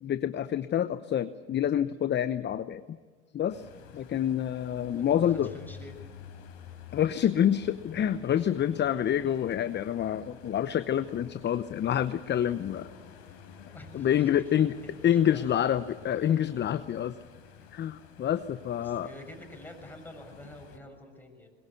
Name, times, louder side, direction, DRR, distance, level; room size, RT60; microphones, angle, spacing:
voice 1, 0.0-2.8 3.3-3.6 3.9-5.5 6.9-12.9 13.9-14.7 15.0-17.1 17.7-19.1, left 10 dB, 30° left, 13 dB, 0.8 m, -27 dB
sound 1, 3.5-20.8, left 7 dB, 70° left, 4.2 m, -50 dB
voice 2, 4.9-6.0 13.7-15.5 17.6-17.7 18.8-21.5, left 1 dB, 5° left, 3 dB, 6.7 m, -48 dB
22.0 x 21.0 x 8.3 m, 1.4 s
hypercardioid pair, 75°, 33 cm